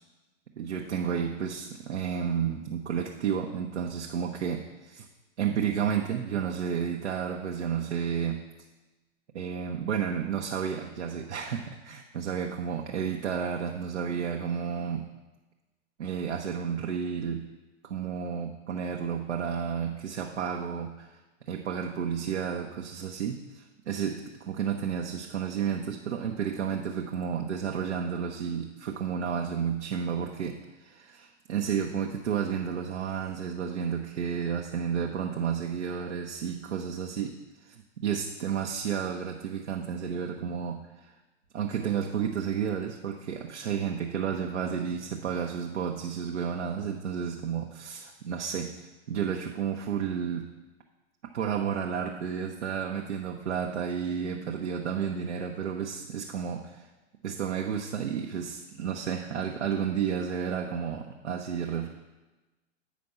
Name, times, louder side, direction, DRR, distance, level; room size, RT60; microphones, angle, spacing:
voice 1, 0.6-5.1 5.4-8.4 9.3-15.1 16.0-17.5 17.8-21.2 21.5-41.1 41.5-48.8 49.1-50.5 51.3-56.9 57.2-61.9, right 7 dB, 70° right, 1 dB, 0.9 m, -31 dB
8.4 x 5.1 x 5.5 m, 1.1 s
figure-of-eight pair, 100°, 37 cm